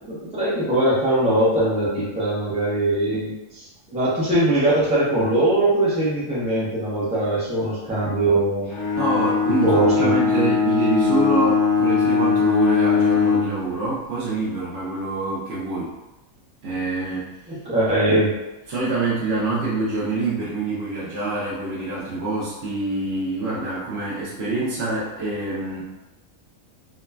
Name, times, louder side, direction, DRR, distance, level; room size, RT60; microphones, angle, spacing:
voice 1, 0.0-8.7 9.5-10.1 17.5-18.3, right 1 dB, 10° right, -8 dB, 0.4 m, -21 dB
Bowed string instrument, 8.7-13.6, left 5 dB, 60° left, 0.9 m, -20 dB
voice 2, 9.0-15.9 16.6-17.6 18.7-25.8, right 2 dB, 55° right, -8 dB, 0.8 m, -26 dB
3.0 x 2.2 x 2.2 m, 1.0 s
omnidirectional pair, 1.5 m